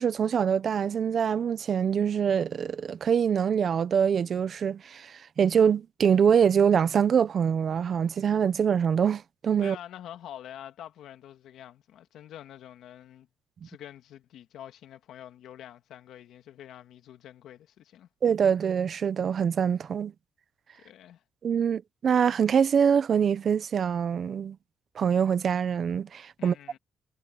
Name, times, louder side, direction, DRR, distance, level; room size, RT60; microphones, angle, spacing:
voice 1, 0.0-9.8 13.6-13.7 18.2-20.1 21.4-24.6 24.9-26.5, right 7 dB, 55° right, 1.0 m, -24 dB
voice 2, 9.6-13.3 13.6-18.1 20.8-21.2 26.4-26.8, left 11 dB, 80° left, 2.0 m, -46 dB
cardioid pair, 90°, 0 cm